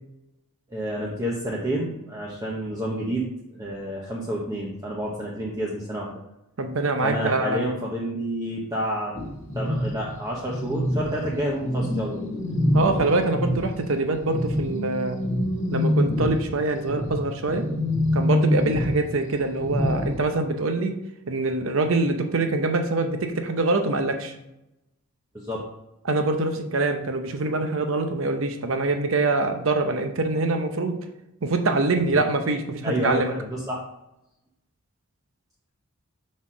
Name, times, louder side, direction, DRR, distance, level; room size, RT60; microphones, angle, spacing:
voice 1, 0.7-6.2 7.0-9.1 9.5-12.2 25.3-25.6 31.9-32.2 32.8-33.8, equal, 15° right, -4 dB, 1.0 m, -29 dB
voice 2, 6.6-7.6 12.7-15.2 15.7-17.6 18.1-20.9 21.3-24.3 26.0-31.0 31.4-33.3, right 2 dB, 65° right, 6 dB, 0.7 m, -24 dB
sound 1, 9.2-13.8 14.1-20.2, left 1 dB, 30° left, 1.2 m, -26 dB
5.7 x 4.3 x 6.1 m, 0.87 s
head